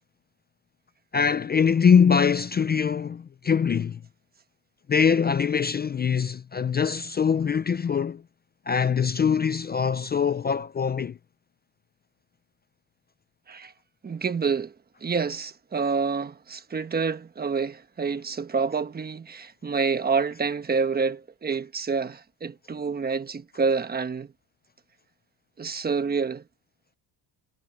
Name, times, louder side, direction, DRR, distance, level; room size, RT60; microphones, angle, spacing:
voice 1, 1.1-4.0 4.9-8.2 8.7-11.2, left 6 dB, 25° left, 0.4 m, -23 dB
voice 2, 14.0-14.7 15.0-24.3 25.6-26.4, right 5 dB, 20° right, 1.2 m, -28 dB
cardioid pair, 135°, 45 cm